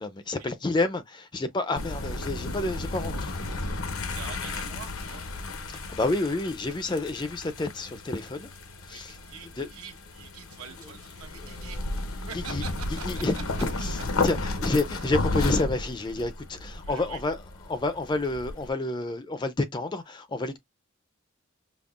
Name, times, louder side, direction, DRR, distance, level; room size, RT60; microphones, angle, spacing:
voice 1, 0.0-3.7 5.7-8.5 8.9-9.2 9.6-9.7 11.3-11.7 12.5-12.6 13.0-13.3 13.8-14.0 14.2-17.4 17.7-20.6, left 2 dB, 20° left, 0.4 m, -29 dB
sound 1, 1.7-18.7, left 2 dB, 80° left, 0.8 m, -33 dB
voice 2, 4.1-5.3 8.8-11.8 12.3-13.2 16.8-17.2, right 6 dB, 90° right, 1.0 m, -44 dB
5.3 x 2.0 x 2.4 m
head